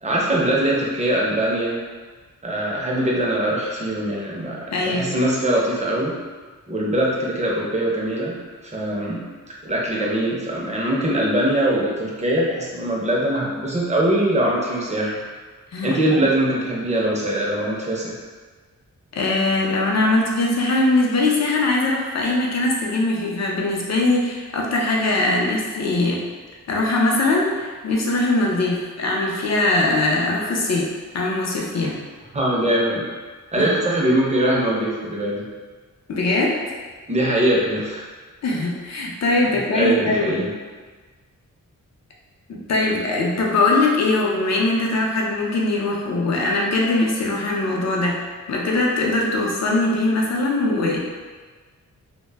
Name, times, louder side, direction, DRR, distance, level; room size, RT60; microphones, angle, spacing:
voice 1, 0.0-1.8 2.4-6.1 6.7-8.4 8.6-9.2 9.6-15.2 15.8-18.1 32.3-33.0 33.5-35.5 37.1-38.0 39.5-40.5, right 1 dB, 20° right, -3 dB, 0.5 m, -22 dB
voice 2, 4.7-5.2 15.7-16.0 19.1-26.2 26.7-32.0 33.6-33.7 36.1-36.6 38.4-40.4 42.5-48.2 48.5-51.0, left 2 dB, 55° left, -2 dB, 0.5 m, -21 dB
2.1 x 2.0 x 3.3 m, 1.4 s
wide cardioid pair, 110°, 33 cm